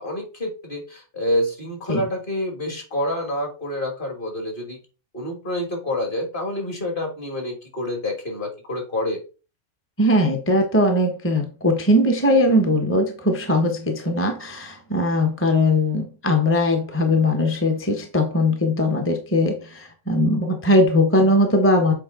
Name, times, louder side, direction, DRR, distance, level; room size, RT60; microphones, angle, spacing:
voice 1, 0.0-4.8 5.1-9.2, left 1 dB, 35° left, 3 dB, 1.8 m, -27 dB
voice 2, 10.0-21.9, left 1 dB, 10° left, 4 dB, 0.8 m, -20 dB
7.4 x 4.5 x 3.7 m, 0.34 s
omnidirectional pair, 1.5 m